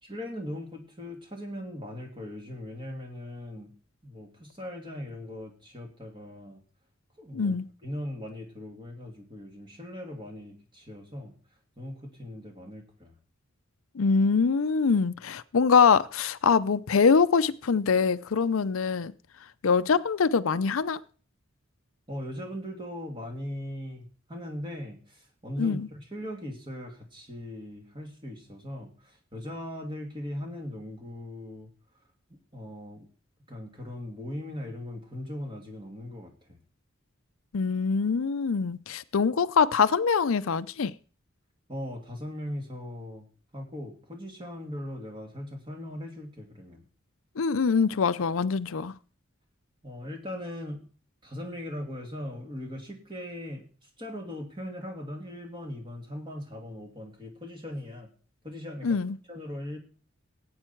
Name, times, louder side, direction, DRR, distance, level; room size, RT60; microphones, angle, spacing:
voice 1, 0.0-3.7 4.0-6.6 7.2-7.5 7.8-11.3 11.8-13.2 22.1-31.7 32.3-33.1 33.5-36.6 41.7-43.3 43.5-46.8 49.8-50.9 51.2-58.1 58.4-59.0 59.3-59.8, left 1 dB, 25° right, 2.9 m, -39 dB
voice 2, 7.3-7.7 13.9-19.1 19.6-21.0 25.6-25.9 37.5-40.9 47.4-48.9 58.8-59.2, left 5 dB, 80° left, 0.5 m, -24 dB
17.5 x 8.8 x 4.5 m
head